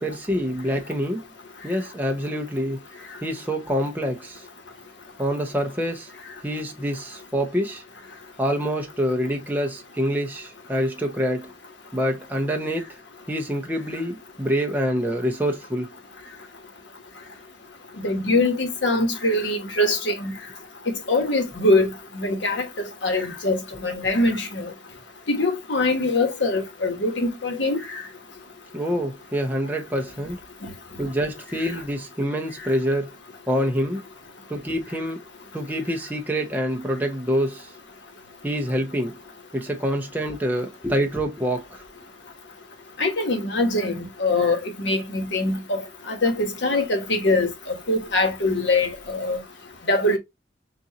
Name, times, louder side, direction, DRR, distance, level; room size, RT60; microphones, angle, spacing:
voice 1, 0.0-1.2 1.6-2.8 3.2-4.4 5.2-6.1 6.4-7.8 8.4-11.5 11.9-12.9 13.3-15.9 28.7-30.4 31.0-33.1 33.5-34.0 34.5-35.2 35.5-37.7 38.4-39.2 39.5-41.8, equal, 10° right, 0.8 m, -26 dB
voice 2, 18.0-20.3 21.1-22.6 23.0-24.7 25.3-28.0 43.0-45.8 46.1-49.4 49.9-50.2, left 2 dB, 85° left, 1.4 m, -23 dB
6.9 x 2.6 x 2.9 m
head